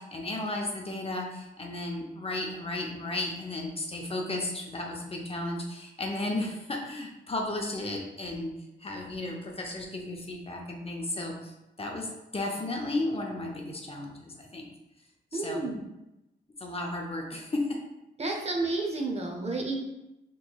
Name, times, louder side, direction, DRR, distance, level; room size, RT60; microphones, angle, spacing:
voice 1, 0.0-11.5 11.8-14.7 15.3-15.6 16.6-17.8, left 2 dB, 30° left, 0 dB, 0.7 m, -34 dB
voice 2, 15.3-15.8 18.2-19.8, right 3 dB, 35° right, 1 dB, 0.7 m, -31 dB
4.2 x 3.1 x 2.3 m, 0.93 s
cardioid pair, 60°, 19 cm